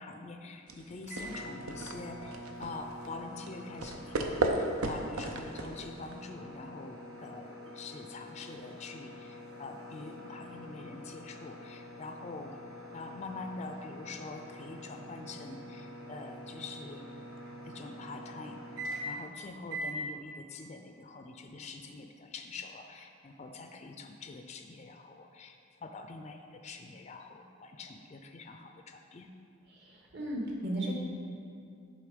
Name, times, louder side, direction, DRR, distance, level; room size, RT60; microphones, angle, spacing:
voice 1, 0.0-12.6 12.9-17.1 17.6-29.3, left 3 dB, 30° left, 5 dB, 0.4 m, -45 dB
sound 1, 0.7-6.3, right 2 dB, 85° right, 0.7 m, -35 dB
sound 2, 1.1-19.3 19.7-20.0, equal, 70° right, 1.4 m, -45 dB
voice 2, 29.7-30.9, right 1 dB, 55° right, -2 dB, 1.4 m, -35 dB
10.5 x 3.8 x 5.1 m, 2.4 s
head